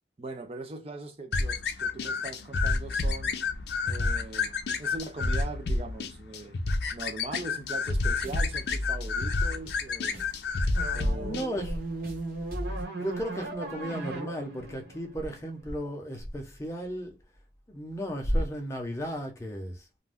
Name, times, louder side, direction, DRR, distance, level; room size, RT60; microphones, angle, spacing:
voice 1, 0.2-3.3 3.8-6.6 6.9-10.3 10.9-11.6, right 2 dB, 35° right, 0.5 m, -41 dB
sound 1, 1.3-11.5, left 3 dB, 75° left, 0.5 m, -29 dB
sound 2, 7.8-12.8, left 1 dB, 55° right, 1.1 m, -39 dB
sound 3, 10.7-15.9, right 2 dB, 85° right, 1.5 m, -38 dB
voice 2, 11.0-11.8 12.7-17.2 17.7-19.8, equal, 15° left, 0.7 m, -34 dB
2.6 x 2.2 x 3.3 m
head